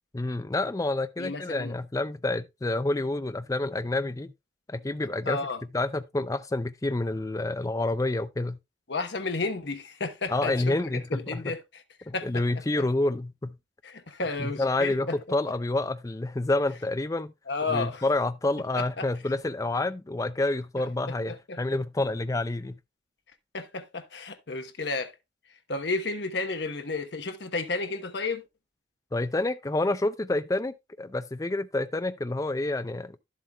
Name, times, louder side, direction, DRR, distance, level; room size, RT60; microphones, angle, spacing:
voice 1, 0.1-4.3 4.7-5.4 5.7-8.6 10.3-11.5 12.1-13.5 14.4-17.3 17.7-22.8 29.1-33.2, left 2 dB, 15° left, 0.4 m, -28 dB
voice 2, 1.2-1.8 5.3-5.6 8.9-11.8 12.1-12.4 12.8-12.9 13.8-15.5 17.5-18.0 18.8-19.1 20.8-20.9 21.3-21.6 23.5-25.1 25.7-28.4, left 3 dB, 65° left, 1.0 m, -32 dB
11.5 x 7.6 x 2.3 m
head